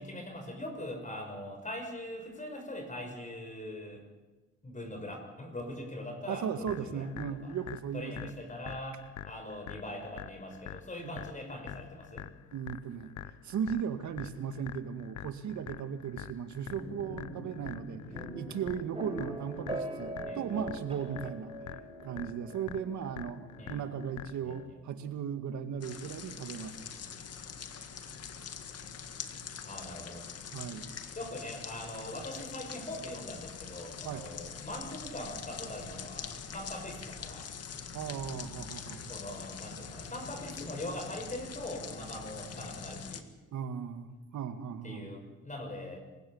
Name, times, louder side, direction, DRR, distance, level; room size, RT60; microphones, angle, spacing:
voice 1, 0.0-4.1 4.6-7.1 7.4-7.5 7.9-12.3 20.3-20.6 23.6-23.8 24.4-24.5 29.7-30.3 31.1-37.5 39.0-43.3 44.8-46.0, left 1 dB, 25° left, 3 dB, 5.7 m, -42 dB
voice 2, 6.3-8.4 11.0-11.1 12.5-18.0 18.3-21.5 22.0-26.8 30.5-30.9 34.0-34.3 37.9-39.1 43.5-45.1, right 7 dB, 70° right, 9 dB, 2.0 m, -37 dB
sound 1, 6.7-24.7, left 12 dB, 70° left, 0.9 m, -46 dB
sound 2, 16.7-30.4, right 1 dB, 15° right, 7.8 m, -44 dB
sound 3, 25.8-43.2, left 6 dB, 55° left, 1.9 m, -44 dB
26.5 x 16.0 x 7.3 m, 1.2 s
cardioid pair, 90°, 30 cm